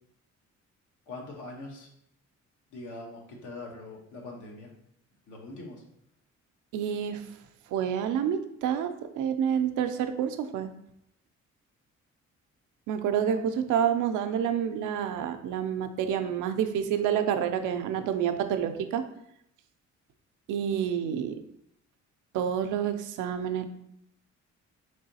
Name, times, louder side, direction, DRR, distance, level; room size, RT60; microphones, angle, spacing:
voice 1, 1.1-1.9 2.7-4.7 5.3-5.8, left 2 dB, 85° left, 0 dB, 1.0 m, -42 dB
voice 2, 6.7-7.2 7.7-10.7 12.9-19.0 20.5-21.3 22.3-23.7, right 8 dB, 90° right, 8 dB, 0.5 m, -28 dB
3.7 x 3.3 x 2.7 m, 0.75 s
cardioid pair, 90°, 30 cm